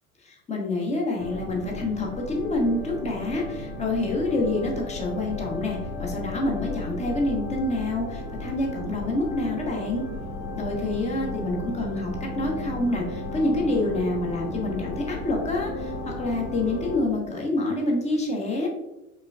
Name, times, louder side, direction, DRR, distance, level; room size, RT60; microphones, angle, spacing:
voice 1, 0.2-10.0 10.5-18.7, left 2 dB, 15° left, 0 dB, 1.1 m, -27 dB
sound 1, 1.2-17.0, left 1 dB, 75° left, 1.5 m, -34 dB
5.4 x 3.8 x 2.3 m, 0.97 s
figure-of-eight pair, 80°, 44 cm